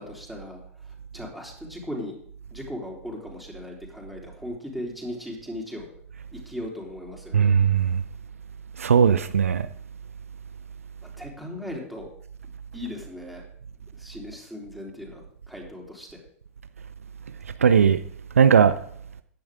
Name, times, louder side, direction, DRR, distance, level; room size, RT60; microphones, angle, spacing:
voice 1, 0.0-2.2 2.5-5.9 6.3-7.5 11.2-12.1 12.7-13.4 14.0-15.2 15.5-16.2, left 1 dB, ahead, 3.7 m, -37 dB
voice 2, 7.3-8.0 8.8-9.7 17.6-18.0 18.4-18.7, right 7 dB, 70° right, 0.6 m, -18 dB
15.0 x 10.5 x 3.7 m
figure-of-eight pair, 95°, 8 cm